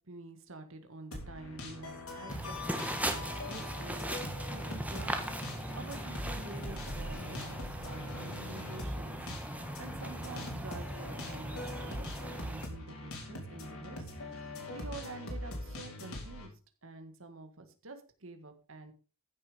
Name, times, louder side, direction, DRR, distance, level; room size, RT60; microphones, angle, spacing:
voice 1, 0.1-5.3 5.7-9.1 9.8-16.5 16.8-18.9, right 2 dB, 60° right, 7 dB, 1.8 m, -48 dB
sound 1, 1.1-16.5, left 1 dB, 70° left, 4.2 m, -42 dB
sound 2, 2.3-12.7, right 1 dB, 5° right, 1.5 m, -39 dB
15.0 x 7.0 x 5.3 m, 0.36 s
head